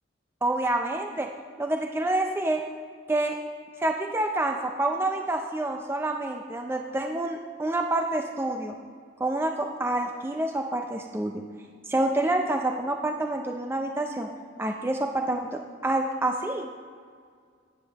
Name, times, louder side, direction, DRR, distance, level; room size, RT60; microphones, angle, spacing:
voice 1, 0.4-1.3 1.6-2.6 3.1-3.4 3.8-8.7 9.2-11.3 11.9-14.3 14.6-16.7, right 2 dB, 15° right, 3 dB, 0.4 m, -27 dB
14.0 x 9.1 x 2.9 m, 2.1 s
head